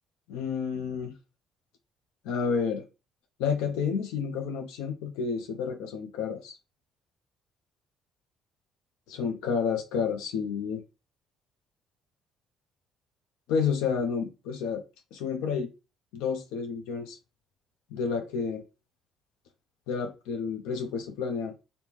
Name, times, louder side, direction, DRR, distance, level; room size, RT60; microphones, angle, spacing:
voice 1, 0.3-1.2 2.2-2.8 3.4-6.6 9.1-10.8 13.5-14.8 15.1-15.7 16.1-17.2 17.9-18.6 19.9-21.5, left 6 dB, 90° left, 0.4 m, -30 dB
2.9 x 2.6 x 3.4 m
supercardioid pair, 80°, 0 cm